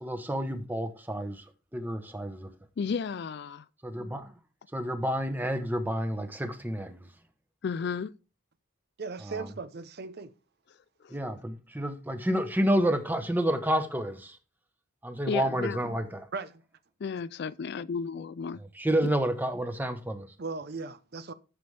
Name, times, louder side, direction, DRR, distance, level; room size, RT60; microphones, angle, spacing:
voice 1, 0.0-2.5 3.8-4.3 4.7-7.1 9.2-9.6 11.1-14.4 15.0-16.3 18.6-20.3, right 1 dB, 10° right, 1.0 m, -30 dB
voice 2, 2.8-3.6 7.6-8.2 11.0-11.1 15.3-15.8 17.0-18.6, left 5 dB, 50° left, 0.3 m, -33 dB
voice 3, 9.0-10.3 16.3-16.6 20.4-21.3, right 4 dB, 50° right, 0.6 m, -37 dB
13.5 x 6.9 x 3.3 m
head